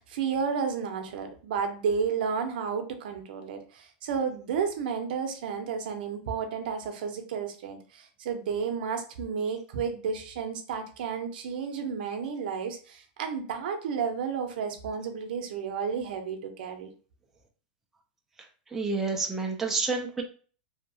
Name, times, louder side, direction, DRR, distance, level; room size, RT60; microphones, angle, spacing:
voice 1, 0.0-16.9, right 6 dB, 65° right, 5 dB, 0.6 m, -32 dB
voice 2, 18.7-20.2, right 4 dB, 5° right, 0 dB, 0.4 m, -29 dB
2.7 x 2.2 x 2.6 m, 0.41 s
supercardioid pair, 155°, 5 cm